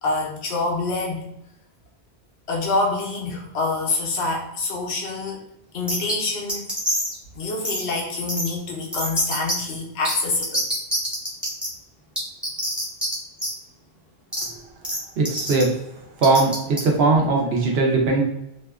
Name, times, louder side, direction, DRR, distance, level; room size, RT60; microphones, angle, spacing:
voice 1, 0.0-1.2 2.5-5.4 5.7-6.7 7.4-10.6, left 3 dB, 75° left, 0 dB, 0.9 m, -26 dB
sound 1, 5.9-6.1 6.5-7.1 7.6-7.8 8.3-8.5 8.9-9.5 10.0-10.1 10.4-11.7 12.2-13.1 13.4-13.5 14.3-14.4 14.8-15.0 15.3-15.6 16.2-16.8, equal, ahead, 0.5 m, -25 dB
voice 2, 15.2-15.7 16.2-18.2, right 3 dB, 70° right, -1 dB, 0.9 m, -19 dB
2.7 x 2.2 x 2.3 m, 0.86 s
omnidirectional pair, 1.1 m